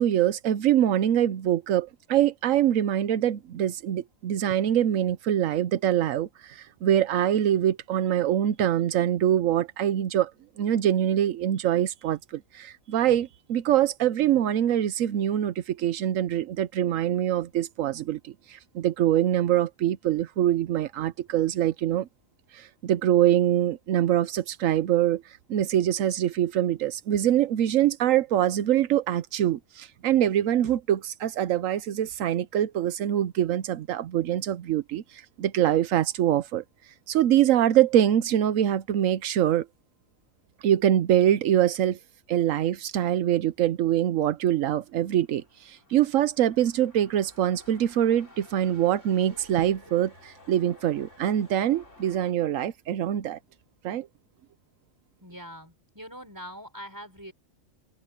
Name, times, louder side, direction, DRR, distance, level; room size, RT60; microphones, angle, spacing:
voice 1, 0.0-10.3 10.6-22.1 22.5-25.2 25.5-36.6 37.1-39.7 40.6-42.0 42.3-53.4 53.8-54.1, right 11 dB, 85° right, 1.1 m, -24 dB
sound 1, 44.4-52.3, left 1 dB, 65° left, 6.2 m, -54 dB
voice 2, 55.2-57.3, equal, 15° right, 5.5 m, -43 dB
open air
omnidirectional pair, 1.3 m